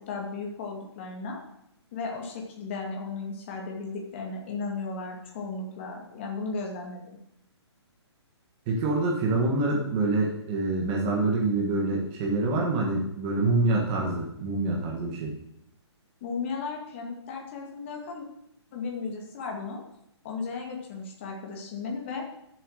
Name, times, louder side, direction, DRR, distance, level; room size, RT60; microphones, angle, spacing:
voice 1, 0.1-1.4 1.9-7.2 16.2-18.3 18.7-19.8 20.2-22.3, left 4 dB, 25° left, 0 dB, 2.1 m, -35 dB
voice 2, 8.7-15.3, right 2 dB, 20° right, -2 dB, 1.4 m, -26 dB
10.5 x 7.8 x 6.4 m, 0.80 s
hypercardioid pair, 175°, 15 cm